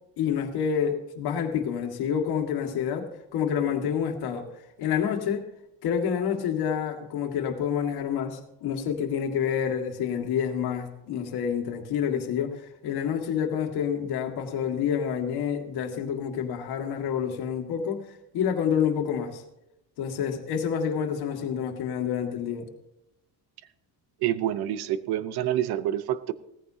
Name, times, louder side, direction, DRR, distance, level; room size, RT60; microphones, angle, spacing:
voice 1, 0.2-4.5 4.8-5.4 5.8-18.0 18.3-19.4 20.0-22.7, left 8 dB, 80° left, 4 dB, 1.9 m, -28 dB
voice 2, 24.2-26.3, right 12 dB, 75° right, 15 dB, 0.8 m, -27 dB
17.0 x 14.5 x 2.8 m, 0.89 s
cardioid pair, 140°, 38 cm